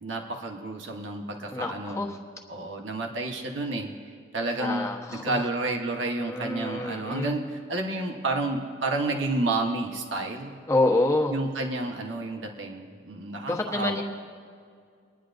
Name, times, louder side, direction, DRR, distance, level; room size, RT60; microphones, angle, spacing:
voice 1, 0.0-2.0 2.5-3.9 4.3-10.6 11.3-14.0, right 2 dB, 90° right, 2 dB, 1.3 m, -30 dB
voice 2, 1.5-2.2 4.6-5.4 6.1-7.3 10.7-11.3 13.5-14.0, left 2 dB, 15° left, -1 dB, 1.1 m, -27 dB
27.5 x 10.0 x 2.6 m, 2.2 s
head